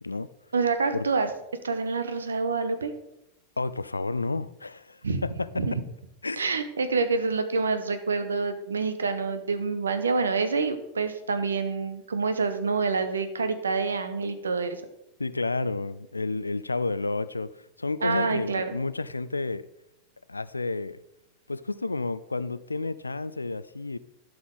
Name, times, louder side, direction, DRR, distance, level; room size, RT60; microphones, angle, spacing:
voice 1, 0.5-1.3 1.6-2.9 5.0-5.2 5.6-5.7 6.4-14.8 18.0-18.8, right 4 dB, 70° right, 0.8 m, -27 dB
voice 2, 3.6-5.6 6.2-6.4 15.2-17.5 17.8-19.7 20.3-21.0 21.5-24.0, left 3 dB, 80° left, 0.3 m, -30 dB
11.5 x 6.0 x 3.8 m
figure-of-eight pair, 90°, 0 cm